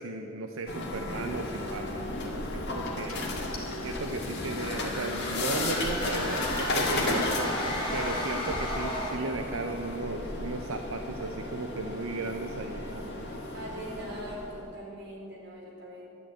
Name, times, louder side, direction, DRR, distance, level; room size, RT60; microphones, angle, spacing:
voice 1, 0.0-3.2 3.8-7.3 7.9-13.3, right 3 dB, 70° right, 5 dB, 0.7 m, -36 dB
sound 1, 0.7-14.6, left 2 dB, 50° left, 2.2 m, -34 dB
Car / Engine starting, 2.0-2.2 2.8-2.9 3.1-8.0, left 4 dB, 75° left, 2.5 m, -50 dB
voice 2, 3.1-3.7 8.2-8.7 13.5-16.0, equal, 55° right, -4 dB, 4.2 m, -42 dB
sound 2, 4.4-9.3, left 1 dB, 25° left, 3.7 m, -33 dB
12.5 x 10.5 x 8.8 m, 2.9 s
head